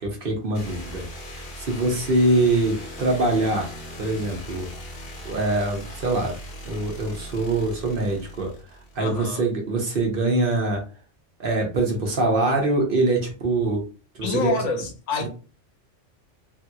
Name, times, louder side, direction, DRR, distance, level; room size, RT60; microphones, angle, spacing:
voice 1, 0.0-1.0 1.6-3.7 4.0-4.7 5.2-6.4 6.7-8.5 8.9-10.8 11.4-13.8 14.2-14.5 15.2-15.3, right 2 dB, 55° right, 0.9 m, -23 dB
sound 1, 0.5-9.3, equal, 60° left, 1.0 m, -39 dB
voice 2, 9.0-9.4 14.2-15.3, left 4 dB, 85° left, 1.1 m, -27 dB
3.3 x 2.8 x 2.3 m
omnidirectional pair, 1.2 m